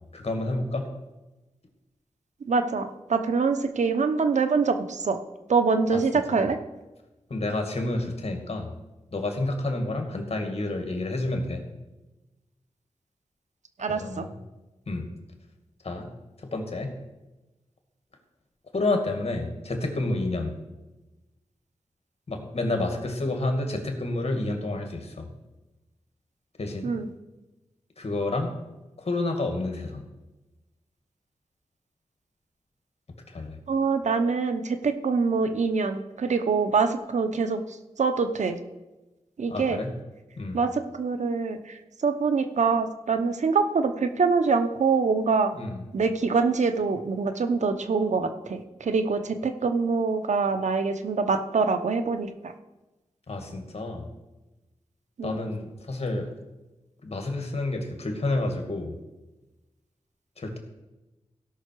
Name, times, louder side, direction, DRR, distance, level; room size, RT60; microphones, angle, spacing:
voice 1, 0.1-0.9 5.9-6.0 6.3-6.4 7.3-8.7 9.1-11.6 13.9-14.3 14.9-15.1 15.8-16.1 16.4-16.9 18.7-20.6 22.3-25.3 26.6-26.9 28.0-28.6 29.0-30.0 33.3-33.6 39.5-39.9 40.4-40.6 45.5-45.8 53.3-54.1 55.2-56.3 57.0-58.9 60.4-60.6, left 2 dB, 60° left, 4 dB, 2.2 m, -29 dB
voice 2, 2.4-5.2 5.5-6.6 13.8-14.2 26.8-27.1 33.7-38.6 39.4-39.8 40.5-45.5 45.9-52.5 55.2-55.3, right 4 dB, 85° right, 8 dB, 0.9 m, -25 dB
17.0 x 5.9 x 4.8 m, 1.1 s
wide cardioid pair, 60°, 12 cm